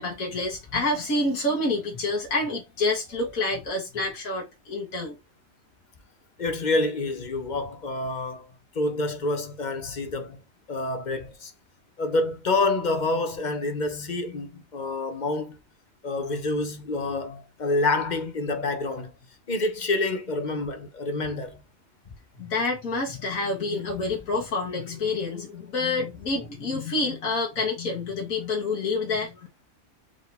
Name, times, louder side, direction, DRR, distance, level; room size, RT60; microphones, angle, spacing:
voice 1, 0.0-5.2 22.4-29.4, left 2 dB, 80° left, 1.9 m, -28 dB
voice 2, 6.4-8.5 8.7-10.4 10.7-11.5 12.0-15.6 16.0-19.1 19.5-21.6, left 2 dB, 40° left, 0.8 m, -27 dB
4.9 x 2.7 x 3.9 m
omnidirectional pair, 1.4 m